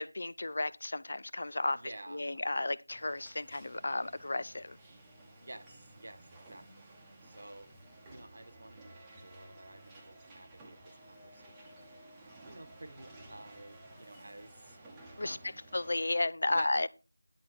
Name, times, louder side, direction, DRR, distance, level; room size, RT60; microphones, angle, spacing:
voice 1, 0.0-4.8 15.2-15.4 15.7-16.9, left 2 dB, 45° left, 0.4 m, -33 dB
voice 2, 1.7-2.4 5.4-7.7 8.1-12.0 12.4-14.8 15.2-15.6 16.5-16.7, right 1 dB, 50° right, 1.3 m, -51 dB
sound 1, 2.9-16.0, right 1 dB, 5° right, 1.0 m, -55 dB
10.5 x 4.1 x 6.1 m
figure-of-eight pair, 170°, 0 cm